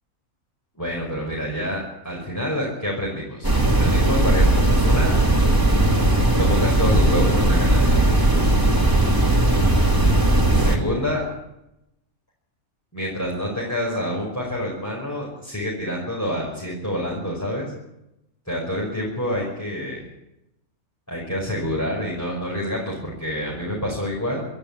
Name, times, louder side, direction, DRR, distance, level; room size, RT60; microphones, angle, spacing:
voice 1, 0.8-3.5 3.7-5.1 6.4-8.0 10.6-11.2 12.9-17.7 18.5-20.1 21.1-24.5, equal, 10° left, -3 dB, 5.4 m, -27 dB
sound 1, 3.4-10.8, right 1 dB, 15° right, 3.5 m, -18 dB
28.0 x 12.5 x 8.6 m, 0.87 s
omnidirectional pair, 1.5 m